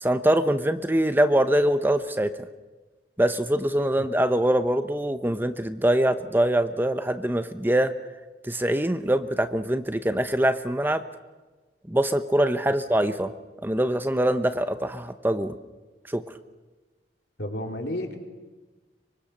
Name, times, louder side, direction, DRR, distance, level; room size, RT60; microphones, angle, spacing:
voice 1, 0.0-2.3 3.2-7.9 8.4-11.0 11.9-13.3 13.6-15.5 16.1-16.2, right 1 dB, 10° right, 10 dB, 0.9 m, -23 dB
voice 2, 17.4-18.2, left 1 dB, 70° left, 3 dB, 3.7 m, -31 dB
24.5 x 23.5 x 6.6 m, 1.2 s
head